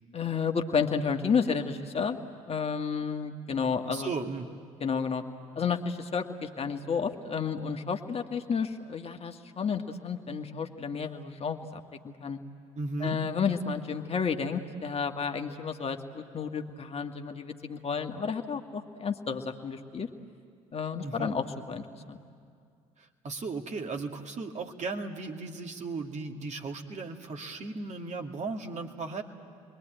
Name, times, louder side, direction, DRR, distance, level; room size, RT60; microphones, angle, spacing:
voice 1, 0.1-2.2 2.5-4.1 4.8-5.2 5.5-12.4 13.0-20.1 20.7-22.2, left 6 dB, 35° left, 5 dB, 1.6 m, -31 dB
voice 2, 3.9-4.5 12.8-13.2 21.0-21.4 23.0-29.2, right 3 dB, 40° right, 3 dB, 2.3 m, -36 dB
29.5 x 22.5 x 9.1 m, 2.2 s
figure-of-eight pair, 50°, 18 cm